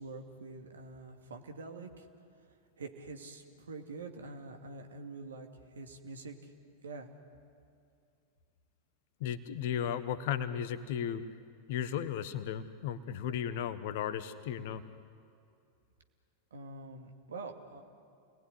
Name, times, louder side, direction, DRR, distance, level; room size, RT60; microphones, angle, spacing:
voice 1, 0.0-2.1 2.8-6.5 6.8-7.2 16.5-17.8, right 3 dB, 70° right, 4 dB, 2.5 m, -46 dB
voice 2, 9.2-11.2 11.7-14.8, left 9 dB, 50° left, 12 dB, 1.4 m, -35 dB
29.5 x 20.0 x 10.0 m, 2.5 s
figure-of-eight pair, 90°, 0 cm